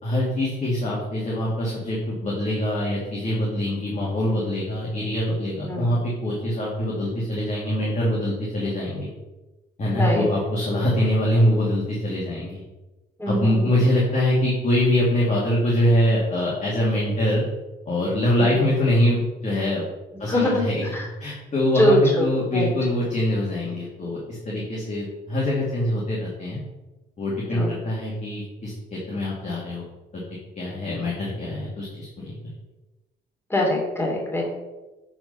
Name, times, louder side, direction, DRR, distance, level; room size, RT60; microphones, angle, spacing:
voice 1, 0.0-9.1 9.8-12.6 13.3-17.4 17.9-19.8 20.2-20.8 21.2-24.2 24.4-26.6 27.2-29.8 30.1-30.2 30.6-32.3, left 1 dB, 35° left, -5 dB, 2.3 m, -24 dB
voice 2, 9.9-10.3 13.2-13.8 18.4-18.6 20.1-21.1 21.7-22.7 27.5-27.8 33.5-34.4, equal, 10° left, -2 dB, 2.9 m, -23 dB
8.7 x 4.3 x 5.5 m, 1.1 s
cardioid pair, 90°, 20 cm